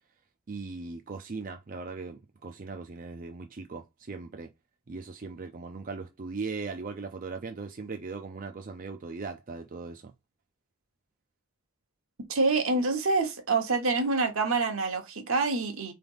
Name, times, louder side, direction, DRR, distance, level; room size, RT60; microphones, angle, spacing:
voice 1, 0.5-4.5 4.9-10.1, right 4 dB, 40° right, 0.5 m, -39 dB
voice 2, 12.3-15.9, right 3 dB, 75° right, 1.3 m, -26 dB
4.0 x 3.4 x 3.9 m
head